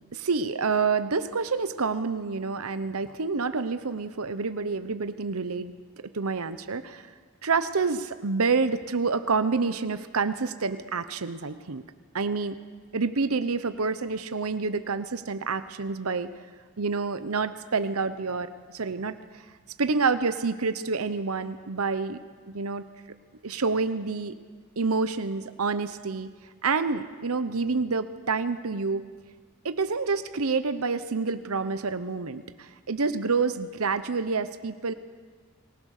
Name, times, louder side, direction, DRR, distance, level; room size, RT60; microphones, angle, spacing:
voice 1, 0.1-5.7 6.1-7.1 7.4-11.8 12.1-12.6 12.9-16.3 16.8-19.1 19.8-22.2 22.5-22.9 23.4-24.3 24.8-26.3 26.6-29.0 29.6-34.9, right 4 dB, 90° right, 11 dB, 0.9 m, -28 dB
28.5 x 20.0 x 6.6 m, 1.5 s
head